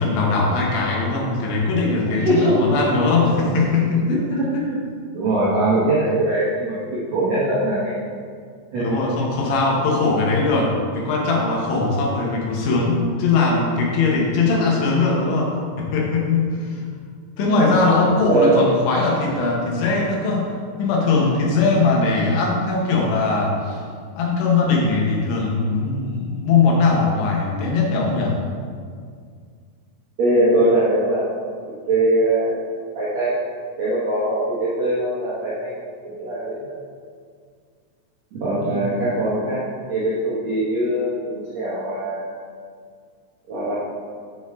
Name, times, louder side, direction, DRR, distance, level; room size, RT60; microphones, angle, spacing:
voice 1, 0.0-4.6 8.8-16.8 17.4-23.8 24.2-28.4 38.6-38.9, left 3 dB, 85° left, -2 dB, 3.6 m, -20 dB
voice 2, 2.1-2.6 4.3-4.7 5.1-6.8 7.1-8.1 8.7-9.0 11.8-11.9 17.5-17.7 18.3-18.6 30.2-31.4 31.9-32.7 32.9-33.4 33.8-35.8 36.0-36.7 38.3-39.6 39.9-42.3 43.5-43.7, right 1 dB, 70° right, -10 dB, 1.6 m, -21 dB
7.9 x 6.7 x 3.7 m, 2.1 s
omnidirectional pair, 5.1 m